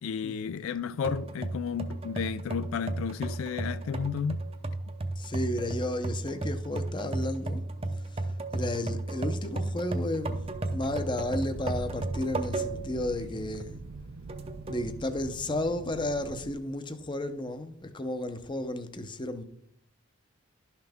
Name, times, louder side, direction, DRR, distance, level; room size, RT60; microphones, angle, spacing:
voice 1, 0.0-4.4, left 6 dB, 70° left, 0.3 m, -32 dB
sound 1, 1.0-13.0 13.4-13.5 14.3-14.9, right 2 dB, 25° right, 0.6 m, -34 dB
voice 2, 5.2-7.6 8.1-10.4 10.7-13.8 14.7-19.4, left 1 dB, 20° left, 0.6 m, -33 dB
sound 2, 10.3-16.5, right 3 dB, 80° right, 0.5 m, -43 dB
11.5 x 5.7 x 3.5 m
head